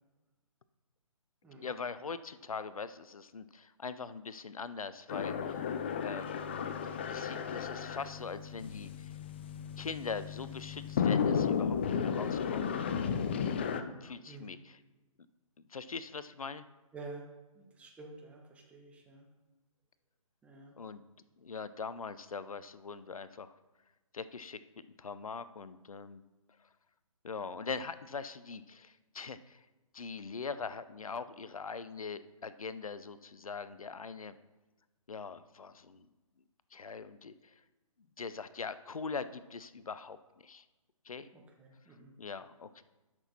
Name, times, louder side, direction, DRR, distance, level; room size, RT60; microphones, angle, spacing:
voice 1, 1.6-5.6 6.0-6.4 7.1-9.2 9.8-12.7 14.0-14.8 15.7-16.7 20.8-21.0 21.4-23.6 24.1-24.6 25.0-26.2 27.2-29.7 29.9-34.3 35.1-36.1 36.7-37.6 38.2-40.2 40.4-40.6 41.0-41.3 42.2-42.8, left 5 dB, 75° left, 14 dB, 0.5 m, -42 dB
sound 1, 5.1-13.8, left 7 dB, 20° left, 0.3 m, -34 dB
voice 2, 16.9-17.2 17.5-19.3 20.4-20.8 41.3-42.1, right 3 dB, 5° right, 0 dB, 1.0 m, -49 dB
12.5 x 6.1 x 4.2 m, 1.1 s
figure-of-eight pair, 140°, 18 cm